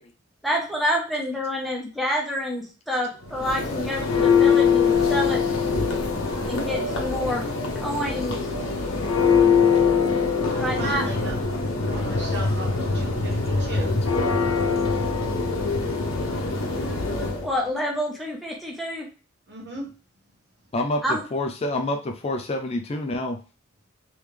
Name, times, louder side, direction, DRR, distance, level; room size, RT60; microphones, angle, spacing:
voice 1, 0.4-5.4 6.5-7.4 7.8-8.4 10.6-11.0 17.4-19.1 21.0-21.2, equal, ahead, -2 dB, 0.9 m, -27 dB
Church bell, 3.2-17.5, left 5 dB, 70° left, 0.7 m, -23 dB
voice 2, 10.4-11.4 11.8-14.0 19.5-19.9, right 2 dB, 50° right, -1 dB, 1.3 m, -36 dB
voice 3, 20.7-23.4, left 1 dB, 30° left, 4 dB, 0.4 m, -28 dB
3.3 x 3.1 x 3.2 m, 0.34 s
head